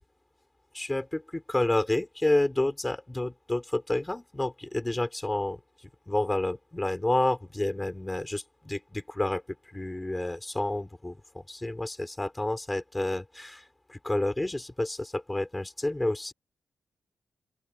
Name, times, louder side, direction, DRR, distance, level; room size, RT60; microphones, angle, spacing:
voice 1, 0.7-5.6 6.1-9.4 9.7-13.6 13.9-16.3, left 1 dB, 15° left, 5.0 m, -29 dB
open air
cardioid pair, 100°, 0 cm